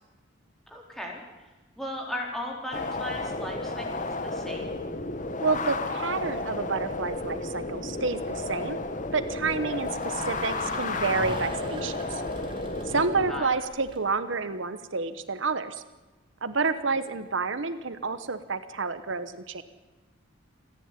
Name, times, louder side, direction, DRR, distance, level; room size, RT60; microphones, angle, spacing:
voice 1, 0.7-1.2 1.8-4.8 9.7-9.8 13.3-13.5, left 1 dB, ahead, -1 dB, 4.1 m, -37 dB
sound 1, 2.7-13.4, left 2 dB, 40° left, 1.2 m, -32 dB
voice 2, 5.4-8.8 9.1-12.2 12.8-15.8 16.4-19.6, right 4 dB, 65° right, 12 dB, 1.1 m, -29 dB
sound 2, 5.8-14.0, right 1 dB, 25° right, 2.6 m, -43 dB
28.5 x 10.5 x 9.8 m, 1.1 s
head